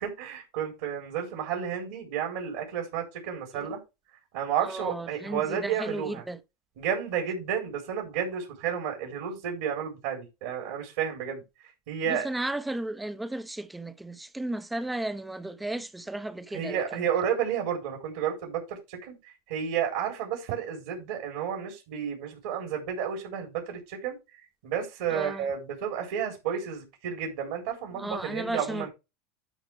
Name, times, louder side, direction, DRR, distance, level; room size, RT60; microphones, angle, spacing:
voice 1, 0.0-3.8 4.3-6.2 6.8-11.4 11.9-12.3 16.5-19.2 19.5-24.2 24.6-28.9, right 8 dB, 65° right, 3.7 m, -31 dB
voice 2, 4.6-6.4 12.1-17.1 25.1-25.5 27.9-28.9, right 1 dB, 10° right, 1.0 m, -34 dB
12.0 x 5.0 x 3.4 m
hypercardioid pair, 85°, 0 cm